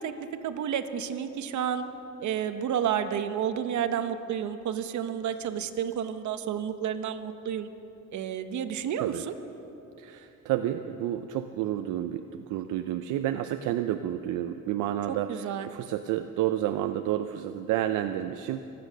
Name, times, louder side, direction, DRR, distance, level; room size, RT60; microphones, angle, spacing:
voice 1, 0.0-1.8 2.2-7.7 8.1-9.3 15.1-15.7, right 9 dB, 70° right, 9 dB, 1.0 m, -31 dB
voice 2, 10.0-15.3 15.6-18.6, right 12 dB, 90° right, 8 dB, 0.6 m, -30 dB
24.0 x 8.8 x 6.3 m, 2.9 s
cardioid pair, 90°, 30 cm